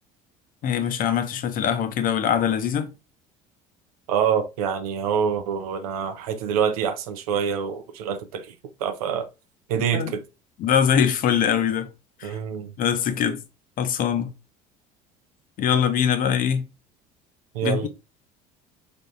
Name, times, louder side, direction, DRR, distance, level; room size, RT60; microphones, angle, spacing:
voice 1, 0.6-2.9 9.9-10.1 10.6-11.9 12.2-12.4 12.8-13.4 13.8-14.3 15.6-16.7 17.6-17.9, left 8 dB, 50° left, 0.6 m, -22 dB
voice 2, 4.1-8.5 8.8-9.3 9.7-10.2 12.2-12.7 17.5-17.9, right 7 dB, 90° right, 0.5 m, -26 dB
3.5 x 3.4 x 2.6 m
supercardioid pair, 85°, 19 cm